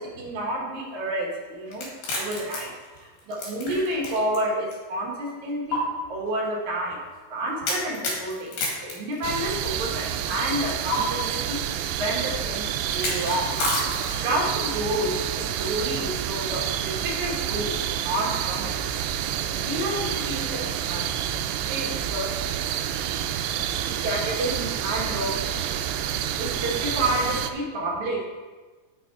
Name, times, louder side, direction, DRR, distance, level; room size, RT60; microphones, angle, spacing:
voice 1, 0.0-1.9 2.2-2.7 3.0-7.0 7.3-8.6 8.8-11.6 12.0-13.5 14.2-18.7 19.4-21.1 21.6-22.3 23.9-25.4 25.7-26.0 26.4-28.3, right 1 dB, 55° right, -2 dB, 2.4 m, -29 dB
sound 1, 1.7-4.4 4.7-4.8 5.7-5.8 7.6-9.8 10.9-11.0 12.9-14.4, left 2 dB, 60° left, 3.6 m, -30 dB
sound 2, 9.2-27.5, right 10 dB, 85° right, 2.6 m, -29 dB
9.0 x 6.7 x 4.7 m, 1.3 s
omnidirectional pair, 4.8 m